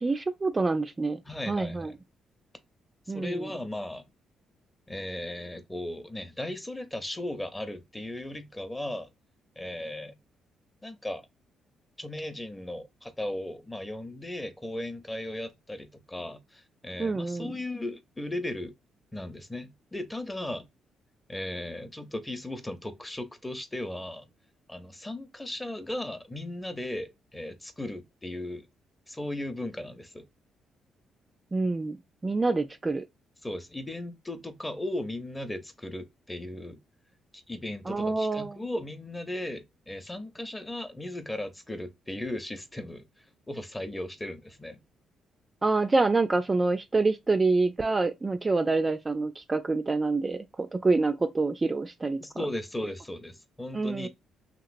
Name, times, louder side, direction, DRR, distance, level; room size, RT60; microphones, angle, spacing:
voice 1, 0.0-1.2 1.5-1.9 3.1-3.5 17.0-17.5 31.5-32.0 32.2-33.0 37.9-38.6 45.6-52.2 53.7-54.1, right 3 dB, 25° right, 0.3 m, -26 dB
voice 2, 1.2-2.0 3.1-4.0 4.9-9.1 9.6-10.2 10.8-11.3 12.0-18.7 19.1-20.7 21.3-24.3 24.7-28.7 29.1-30.3 33.4-36.8 37.3-43.1 43.5-44.8 52.2-54.1, left 1 dB, 15° left, 0.6 m, -36 dB
2.9 x 2.8 x 2.5 m
cardioid pair, 90°, 0 cm